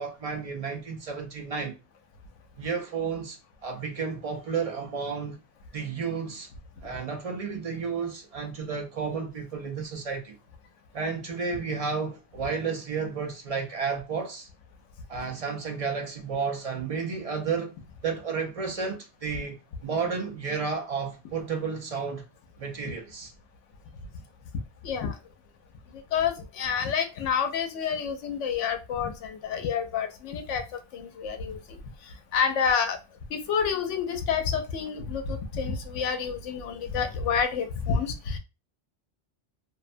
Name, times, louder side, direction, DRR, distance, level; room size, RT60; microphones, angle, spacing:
voice 1, 0.0-1.8 2.6-3.4 3.6-5.4 5.7-6.5 6.8-10.4 10.9-14.5 15.1-17.8 18.0-19.6 19.8-22.2 22.6-23.3, right 5 dB, 50° right, 0.4 m, -32 dB
voice 2, 24.8-25.2 25.9-33.0 33.3-38.4, left 6 dB, 90° left, 0.9 m, -29 dB
2.6 x 2.1 x 2.5 m
omnidirectional pair, 1.2 m